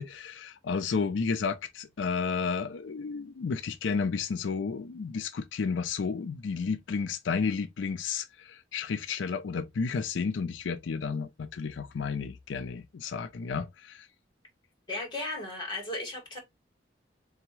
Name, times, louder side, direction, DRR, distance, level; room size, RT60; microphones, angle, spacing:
voice 1, 0.0-14.1, left 5 dB, 90° left, 0.4 m, -32 dB
voice 2, 14.9-16.4, left 2 dB, 25° left, 2.3 m, -35 dB
4.0 x 3.5 x 3.0 m
head